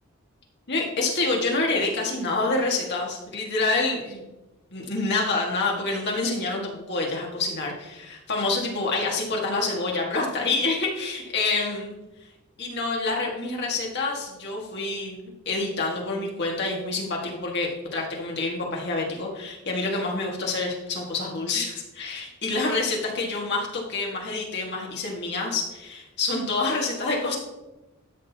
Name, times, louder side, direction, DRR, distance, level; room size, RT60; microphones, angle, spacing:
voice 1, 0.7-4.3 4.7-12.0 12.6-27.4, left 3 dB, 55° left, -2 dB, 2.0 m, -27 dB
13.0 x 6.5 x 2.9 m, 1.0 s
head